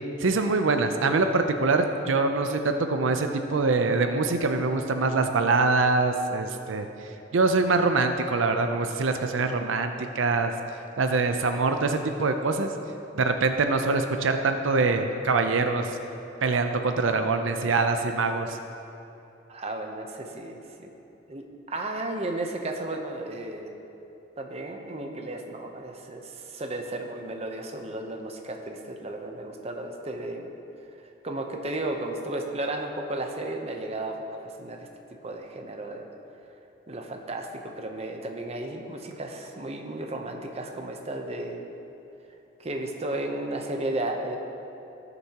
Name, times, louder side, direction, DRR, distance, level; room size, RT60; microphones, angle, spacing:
voice 1, 0.2-6.9 7.3-10.5 11.0-12.7 13.1-16.0 16.4-18.6, right 3 dB, 85° right, 6 dB, 0.6 m, -24 dB
voice 2, 19.5-20.9 21.3-23.7 24.4-30.5 31.2-34.8 35.2-36.1 36.9-41.7 42.6-44.4, right 2 dB, 35° right, 3 dB, 0.8 m, -34 dB
17.0 x 6.8 x 2.9 m, 2.9 s
head